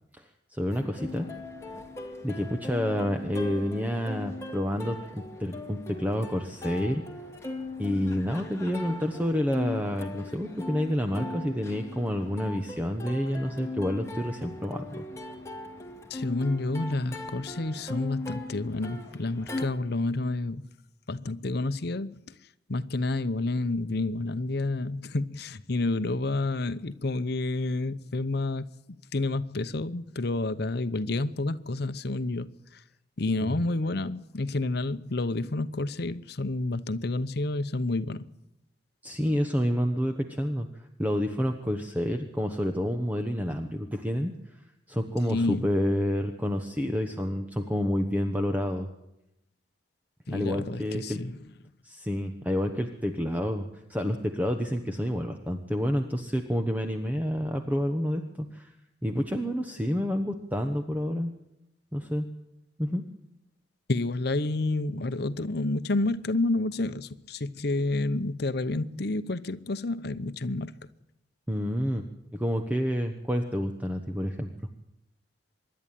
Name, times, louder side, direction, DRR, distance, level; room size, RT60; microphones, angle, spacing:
voice 1, 0.5-1.3 2.2-7.0 7.8-15.0 33.4-33.5 39.0-44.3 44.9-48.9 50.3-51.2 51.8-58.7 59.0-61.3 61.9-62.3 62.8-63.0 71.5-74.5, equal, 10° right, 1.1 m, -29 dB
Plucked string instrument, 0.7-19.7, left 2 dB, 15° left, 2.2 m, -39 dB
voice 2, 16.1-20.7 21.1-22.4 22.7-32.8 33.2-38.2 45.3-45.6 50.3-51.4 63.9-70.7, left 2 dB, 60° left, 0.8 m, -29 dB
25.0 x 11.5 x 9.1 m
head